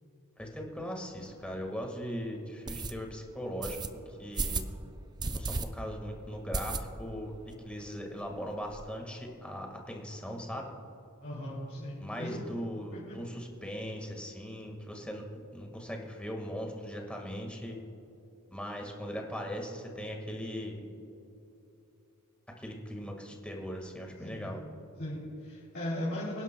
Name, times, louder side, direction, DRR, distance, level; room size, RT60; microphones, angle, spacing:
voice 1, 0.4-3.8 4.1-4.6 5.3-7.3 7.6-10.7 12.0-15.2 15.5-17.8 18.5-20.8 22.6-24.6, equal, 5° left, 1 dB, 1.7 m, -39 dB
sound 1, 1.3-1.4 1.8-1.9 2.7-2.9 3.6-3.9 4.3-4.7 5.2-5.7 6.0-6.1 6.5-7.2 7.5-7.6 7.9-8.0 8.2-8.8, right 3 dB, 20° right, 0.4 m, -34 dB
voice 2, 11.2-12.5 12.9-13.2 24.2-24.6 24.9-26.4, left 1 dB, 55° left, -8 dB, 3.1 m, -38 dB
25.0 x 11.0 x 2.3 m, 2.9 s
head